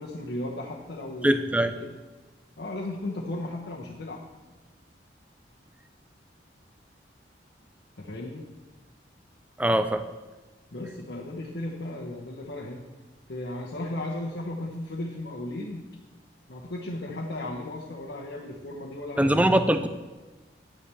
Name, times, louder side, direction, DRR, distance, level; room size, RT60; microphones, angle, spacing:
voice 1, 0.0-1.9 2.6-4.2 8.0-8.5 10.7-12.9 13.3-15.9 16.5-19.5, left 1 dB, 70° left, -3 dB, 1.0 m, -35 dB
voice 2, 1.2-1.7 9.6-10.0 19.2-19.9, right 1 dB, 10° right, 9 dB, 0.4 m, -22 dB
10.0 x 9.8 x 3.5 m, 1.2 s
head